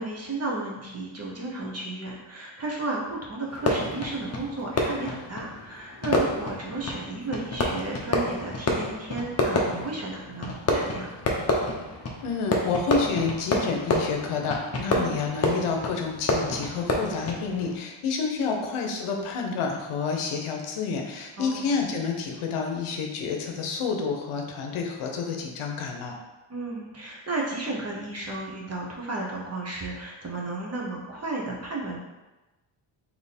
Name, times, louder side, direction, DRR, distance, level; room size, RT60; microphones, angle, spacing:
voice 1, 0.0-11.1 14.9-15.2 21.4-21.7 26.5-32.0, right 2 dB, 30° right, -3 dB, 0.9 m, -33 dB
Fireworks, 3.5-17.8, left 1 dB, 30° left, 0.7 m, -29 dB
voice 2, 12.2-26.1, left 5 dB, 90° left, 2 dB, 0.8 m, -29 dB
3.5 x 2.9 x 4.1 m, 1.1 s
cardioid pair, 110°, 49 cm